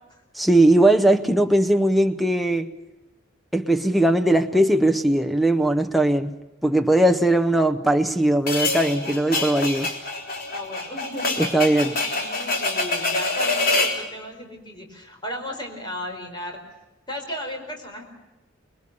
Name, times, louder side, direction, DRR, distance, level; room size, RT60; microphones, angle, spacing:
voice 1, 0.4-2.7 3.5-6.4 6.6-9.9 11.4-11.9, right 1 dB, ahead, 0.7 m, -19 dB
sound 1, 8.5-14.0, left 2 dB, 50° left, 3.6 m, -25 dB
voice 2, 10.5-11.4 11.6-16.6 17.1-18.0, equal, 25° left, 4.7 m, -35 dB
26.0 x 21.0 x 6.9 m
head